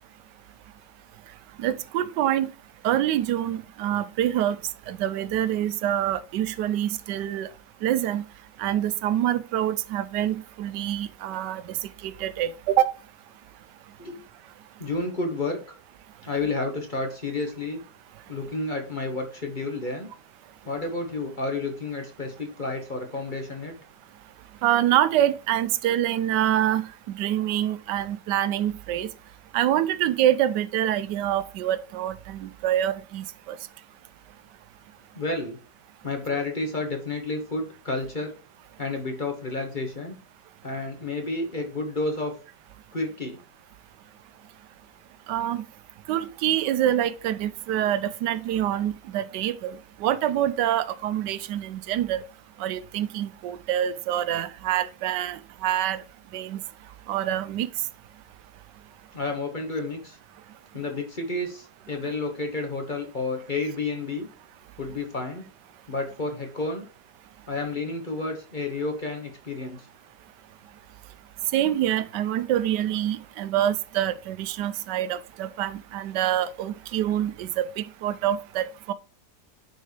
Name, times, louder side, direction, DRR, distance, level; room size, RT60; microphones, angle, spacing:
voice 1, 1.6-2.5 2.8-4.6 4.9-7.5 7.8-8.3 8.6-11.6 12.0-12.9 24.6-26.9 27.1-29.1 29.5-33.6 45.3-45.6 46.1-49.8 50.0-52.2 52.6-56.0 56.3-56.6 57.1-57.7 71.5-78.9, right 11 dB, 85° right, 1.2 m, -26 dB
voice 2, 14.8-15.6 16.2-17.8 18.3-20.1 20.6-23.7 35.1-35.6 36.0-38.3 38.8-40.2 40.6-42.3 42.9-43.4 59.1-60.2 60.7-64.3 64.8-65.4 65.9-66.9 67.5-69.9, left 3 dB, 35° left, 1.1 m, -30 dB
9.1 x 4.6 x 3.3 m
omnidirectional pair, 1.8 m